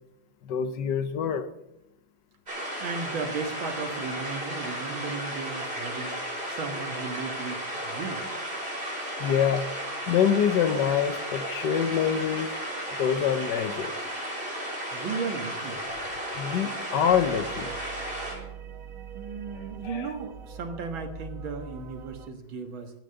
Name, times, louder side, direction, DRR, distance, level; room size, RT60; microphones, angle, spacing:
voice 1, 0.4-1.5 9.2-9.7 10.1-12.5 13.0-13.9 16.3-17.7 19.6-20.1, left 8 dB, 65° left, 11 dB, 1.3 m, -25 dB
sound 1, 2.5-18.4, equal, 30° right, 5.3 m, -34 dB
voice 2, 2.8-6.2 6.5-8.2 14.9-15.8 19.1-22.9, right 5 dB, 80° right, 6 dB, 2.3 m, -35 dB
sound 2, 17.1-22.3, right 6 dB, 50° right, 1.2 m, -42 dB
11.5 x 10.0 x 6.8 m, 0.86 s
omnidirectional pair, 2.2 m